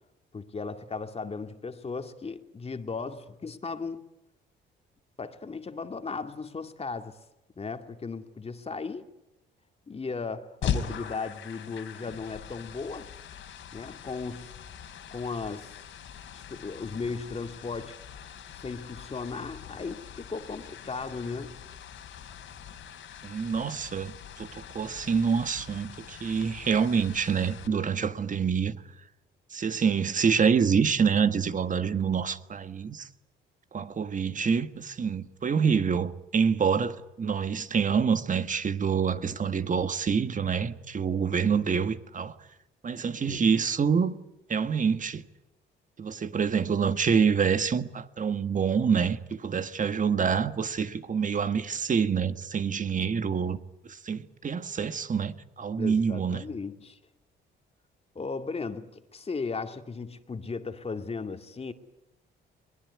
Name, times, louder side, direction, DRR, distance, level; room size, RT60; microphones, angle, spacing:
voice 1, 0.3-4.0 5.2-7.2 7.6-9.1 9.9-13.1 13.7-14.5 15.1-15.8 16.3-18.0 18.5-21.6 27.6-27.9 43.3-43.5 55.8-57.0 58.2-61.7, left 4 dB, 30° left, 2.2 m, -36 dB
sound 1, 10.6-27.7, left 7 dB, 75° left, 3.3 m, -41 dB
voice 2, 23.2-28.8 29.5-33.1 33.7-42.3 42.8-44.2 44.5-45.2 46.0-53.6 53.9-56.4, right 6 dB, 40° right, 1.6 m, -26 dB
22.0 x 20.5 x 9.7 m
cardioid pair, 90°, 20 cm